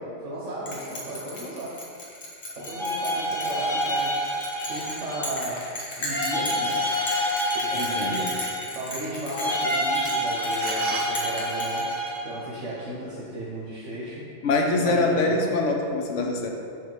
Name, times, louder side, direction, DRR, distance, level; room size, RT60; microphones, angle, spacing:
voice 1, 0.2-1.8 2.6-4.2 4.7-5.7 6.0-6.8 7.6-8.4 8.7-11.9 12.2-14.3 14.8-15.5, right 1 dB, 80° right, -6 dB, 1.5 m, -35 dB
Bell, 0.7-12.3, left 1 dB, 60° left, 1.5 m, -36 dB
sound 1, 2.6-5.4 6.1-8.9 9.3-12.3, equal, 45° left, 1.8 m, -28 dB
sound 2, 6.3-7.4 10.0-11.7, right 4 dB, 60° right, 0.9 m, -37 dB
voice 2, 7.7-8.3 14.4-16.5, left 2 dB, 80° left, 2 dB, 1.1 m, -24 dB
5.7 x 5.0 x 4.7 m, 2.3 s
omnidirectional pair, 1.2 m